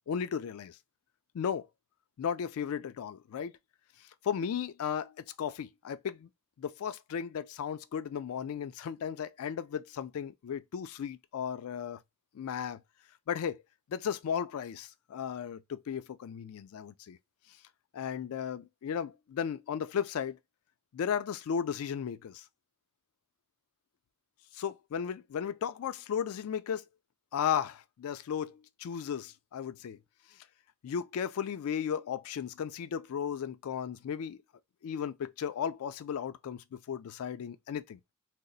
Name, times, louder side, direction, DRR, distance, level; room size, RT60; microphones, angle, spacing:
voice 1, 0.1-0.8 1.3-1.7 2.2-3.5 4.2-6.3 6.6-12.0 12.3-12.8 13.3-13.6 13.9-17.2 17.9-20.4 20.9-22.4 24.5-26.9 27.3-30.0 30.8-34.4 34.8-38.0, left 7 dB, 75° left, 0.3 m, -35 dB
2.3 x 2.0 x 3.8 m
head